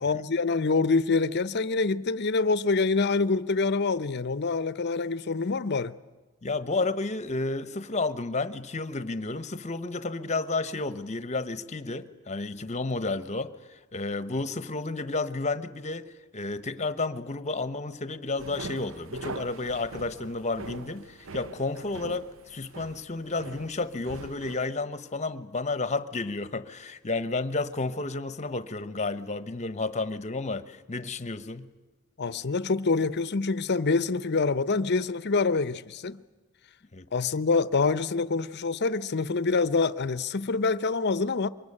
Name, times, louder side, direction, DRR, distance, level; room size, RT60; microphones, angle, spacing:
voice 1, 0.0-5.9 32.2-36.2 37.1-41.5, left 4 dB, 50° left, 0.8 m, -26 dB
voice 2, 6.4-31.7 36.9-37.1, left 3 dB, 35° left, 1.0 m, -31 dB
sound 1, 18.4-24.6, right 3 dB, 65° right, 0.8 m, -42 dB
24.0 x 22.0 x 9.9 m
head